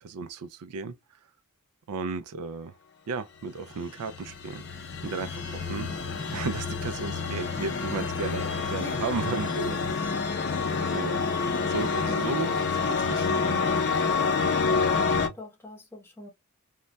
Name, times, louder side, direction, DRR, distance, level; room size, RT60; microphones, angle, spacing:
voice 1, 0.0-0.9 1.9-2.7 3.1-10.3 10.9-11.2 11.7-13.6, right 4 dB, 85° right, 0.4 m, -35 dB
sound 1, 3.7-15.3, left 4 dB, 50° left, 0.6 m, -28 dB
voice 2, 14.5-16.3, left 1 dB, 10° left, 0.7 m, -44 dB
2.2 x 2.1 x 3.8 m
head